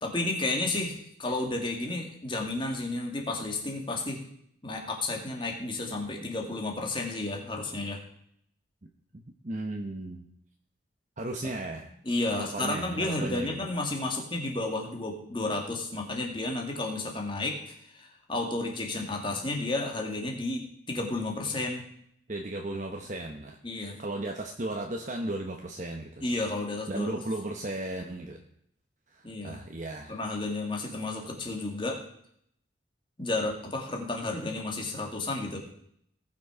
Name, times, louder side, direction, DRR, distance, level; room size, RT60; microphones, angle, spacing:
voice 1, 0.0-4.2 4.6-8.0 12.0-21.8 23.6-24.0 26.2-27.2 29.2-29.6 30.1-32.0 33.2-35.6, left 2 dB, 25° left, 1 dB, 2.1 m, -32 dB
voice 2, 9.1-10.2 11.2-11.9 12.3-13.5 22.3-26.2 26.9-28.4 29.1-30.2, right 1 dB, 40° right, 2 dB, 0.9 m, -35 dB
18.5 x 6.2 x 5.0 m, 0.70 s
head